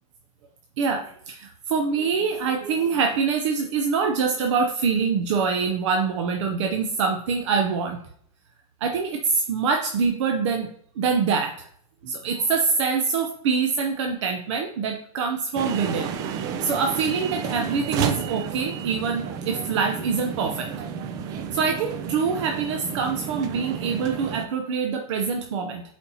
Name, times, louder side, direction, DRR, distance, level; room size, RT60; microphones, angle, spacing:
voice 1, 0.8-8.0 8.8-11.7 12.0-16.1 16.6-20.7 21.5-25.8, right 5 dB, 50° right, 4 dB, 0.7 m, -25 dB
sound 1, 15.5-24.5, right 7 dB, 20° right, 0.3 m, -31 dB
8.7 x 4.3 x 2.8 m, 0.66 s
supercardioid pair, 165°, 19 cm